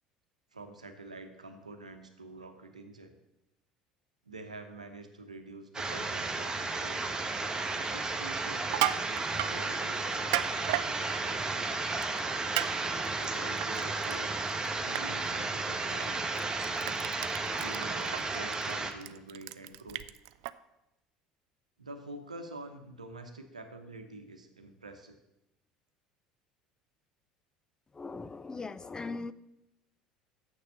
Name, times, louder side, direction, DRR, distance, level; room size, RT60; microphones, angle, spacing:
voice 1, 0.5-3.2 4.2-7.2 7.8-11.6 13.2-14.4 14.8-16.3 17.6-20.0 21.8-25.2, right 2 dB, 90° right, 7 dB, 0.8 m, -47 dB
sound 1, 5.7-18.9, right 3 dB, 20° right, 1.2 m, -33 dB
Crushing, 8.6-9.5 10.1-10.9 12.0-12.2 12.6-12.7 13.1-14.2 14.5-14.7 15.0-15.1 16.0-16.1 16.4-20.5, right 16 dB, 65° right, 0.3 m, -33 dB
voice 2, 27.9-29.3, left 3 dB, 20° left, 15 dB, 0.5 m, -39 dB
7.2 x 6.6 x 6.6 m, 0.92 s
figure-of-eight pair, 65°, 4 cm